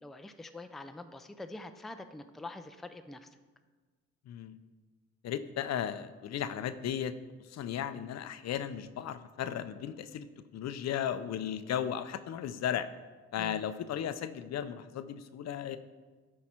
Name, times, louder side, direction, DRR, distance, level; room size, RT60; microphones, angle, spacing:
voice 1, 0.0-3.3 13.4-13.6, left 2 dB, ahead, 8 dB, 0.4 m, -45 dB
voice 2, 4.3-4.6 5.2-7.1 7.5-10.3 10.5-12.9 13.3-15.8, left 9 dB, 60° left, 12 dB, 0.5 m, -35 dB
12.0 x 4.7 x 4.4 m, 1.4 s
cardioid pair, 90°, 30 cm